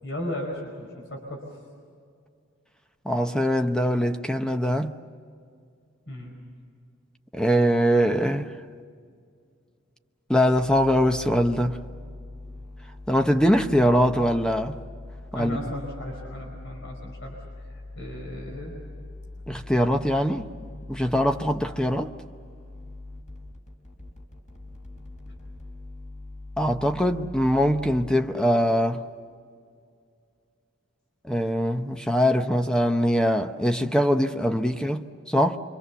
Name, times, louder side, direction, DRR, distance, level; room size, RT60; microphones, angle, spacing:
voice 1, 0.0-1.4 6.1-6.3 15.3-18.8, left 1 dB, 65° left, 4.9 m, -36 dB
voice 2, 3.0-4.9 7.3-8.5 10.3-11.8 13.1-14.8 15.3-15.6 19.5-20.5 20.9-22.1 26.6-29.0 31.2-35.6, equal, 5° left, 0.7 m, -22 dB
sound 1, 10.5-28.1, left 2 dB, 40° left, 3.9 m, -42 dB
27.0 x 24.5 x 7.0 m
head